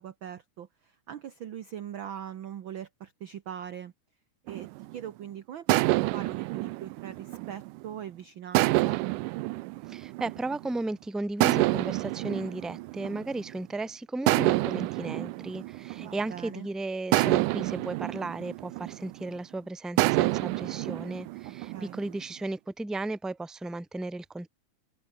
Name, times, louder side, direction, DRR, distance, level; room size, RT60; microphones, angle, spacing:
voice 1, 0.0-3.9 4.5-9.0 16.0-16.7 21.4-22.0, right 9 dB, 70° right, 1.2 m, -41 dB
sound 1, 4.5-5.1 5.7-8.0 8.6-10.7 11.4-13.7 14.3-16.5 17.1-19.4 20.0-22.2, right 21 dB, 90° right, 2.2 m, -28 dB
voice 2, 9.9-24.5, right 2 dB, ahead, 1.3 m, -35 dB
open air
omnidirectional pair, 3.6 m